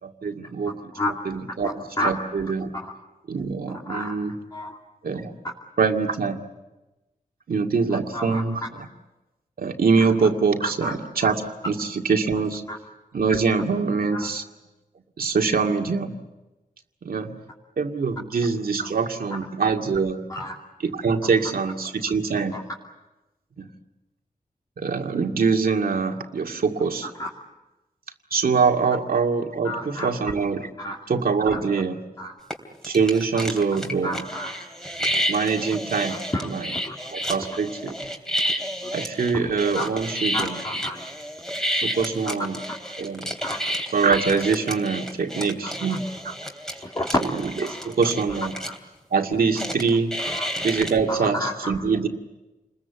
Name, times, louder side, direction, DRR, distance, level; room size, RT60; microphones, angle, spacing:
voice 1, 0.0-0.7 1.3-2.7 3.3-4.3 5.0-5.4 5.8-6.4 7.5-8.6 9.6-12.6 13.1-14.4 15.2-16.2 17.0-17.3 17.8-20.2 20.8-22.5 23.6-23.7 24.8-27.1 28.3-30.7 31.1-32.0 32.8-34.2 35.3-36.2 36.4-36.7 37.1-37.9 38.9-40.6 41.7-42.6 43.0-43.3 43.9-46.4 47.7-48.5 49.1-50.1 50.6-52.1, right 5 dB, 85° right, 3 dB, 2.1 m, -24 dB
voice 2, 1.6-2.1 3.9-4.1 4.5-4.8 8.1-8.4 10.6-10.9 12.7-12.8 14.1-14.3 20.3-20.6 22.5-22.6 27.2-27.3 29.6-30.1 30.8-31.0 31.5-31.6 32.2-32.3 34.0-34.6 36.1-36.9 38.8-38.9 39.8-39.9 40.3-41.0 42.2-42.3 43.4-43.6 45.6-45.7 46.8-47.1 47.6-47.7 48.7-48.8 50.3-50.5 51.1-51.5, left 1 dB, 25° left, -2 dB, 2.8 m, -30 dB
sound 1, 32.5-32.6 32.8-48.8 49.6-50.9, equal, 5° left, 3.1 m, -30 dB
29.0 x 21.0 x 8.2 m, 1.1 s
wide cardioid pair, 125°, 15 cm